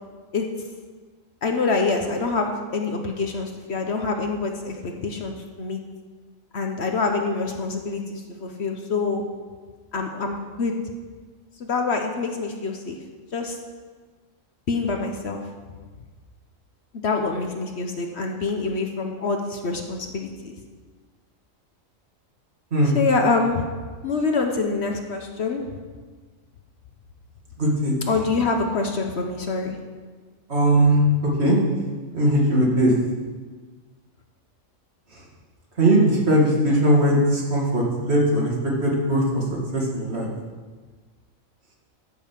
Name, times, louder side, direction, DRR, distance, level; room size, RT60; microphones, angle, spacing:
voice 1, 1.4-5.8 6.5-9.2 9.9-10.7 11.6-13.0 13.3-13.6 14.7-15.4 17.0-20.5 22.8-23.6 24.0-25.6 28.1-29.8, left 4 dB, 55° left, 3 dB, 1.1 m, -25 dB
voice 2, 27.6-27.9 30.5-31.0 31.4-31.6 32.1-32.9 35.8-38.5 38.8-39.4 39.7-40.3, right 1 dB, 50° right, -3 dB, 2.4 m, -19 dB
13.5 x 5.4 x 5.8 m, 1.4 s
omnidirectional pair, 1.4 m